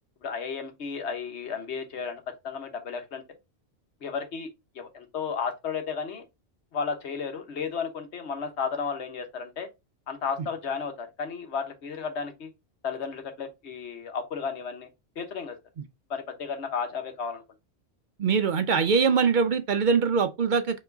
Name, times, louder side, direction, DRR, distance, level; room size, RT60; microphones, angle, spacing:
voice 1, 0.2-3.2 4.0-4.5 4.7-6.2 6.7-9.7 10.1-12.5 12.8-14.9 15.2-15.6 16.1-17.4, left 6 dB, 90° left, 1.3 m, -33 dB
voice 2, 18.2-20.8, right 5 dB, 55° right, 0.6 m, -23 dB
4.6 x 3.0 x 3.8 m
omnidirectional pair, 1.1 m